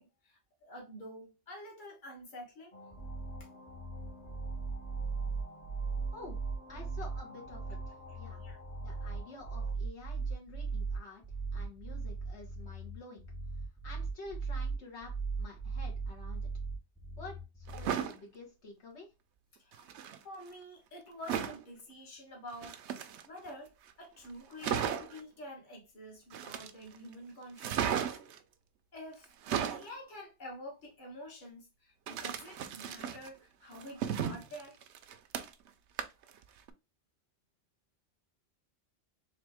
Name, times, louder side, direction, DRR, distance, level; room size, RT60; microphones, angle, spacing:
voice 1, 0.0-2.7 8.1-8.6 19.6-19.9 20.2-22.8 23.2-23.7 24.0-28.2 28.9-34.8, left 1 dB, 45° left, 1.5 m, -48 dB
sound 1, 2.7-9.7, left 1 dB, 30° left, 0.8 m, -53 dB
sound 2, 2.9-17.9, right 4 dB, 5° right, 0.4 m, -38 dB
voice 2, 6.7-8.4 8.8-11.2 11.5-13.2 13.8-16.5 17.2-19.1, left 3 dB, 75° left, 1.6 m, -49 dB
sound 3, 17.7-18.2 19.7-20.2 21.3-21.6 22.5-23.5 23.9-24.0 24.3-24.4 24.6-25.2 26.3-27.0 27.6-28.4 29.2-29.9 32.1-33.3 33.7-35.7 36.0-36.3 36.7-36.8, right 8 dB, 80° right, 0.9 m, -35 dB
3.8 x 3.2 x 3.4 m
omnidirectional pair, 1.2 m